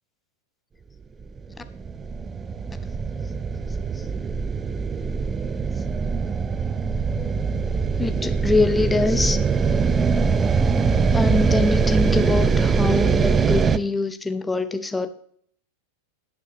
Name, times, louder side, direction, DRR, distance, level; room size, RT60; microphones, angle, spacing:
sound 1, 1.2-13.8, right 5 dB, 20° right, 0.5 m, -22 dB
voice 1, 7.2-7.6 8.0-9.4 11.1-15.1, left 3 dB, 10° left, 0.8 m, -24 dB
17.0 x 9.2 x 3.2 m
figure-of-eight pair, 90°, 0 cm